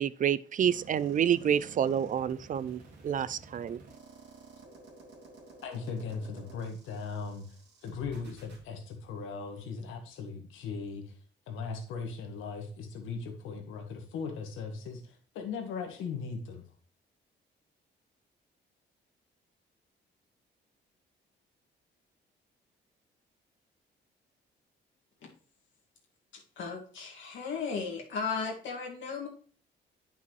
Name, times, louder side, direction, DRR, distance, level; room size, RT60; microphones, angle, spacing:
voice 1, 0.0-3.8, right 9 dB, 40° right, 0.4 m, -28 dB
sound 1, 0.6-8.6, right 3 dB, 60° right, 2.1 m, -52 dB
voice 2, 5.6-11.2 11.5-16.6, left 5 dB, 90° left, 1.5 m, -38 dB
voice 3, 26.3-29.3, left 5 dB, 75° left, 2.0 m, -36 dB
9.5 x 5.5 x 3.1 m
cardioid pair, 90°, 20 cm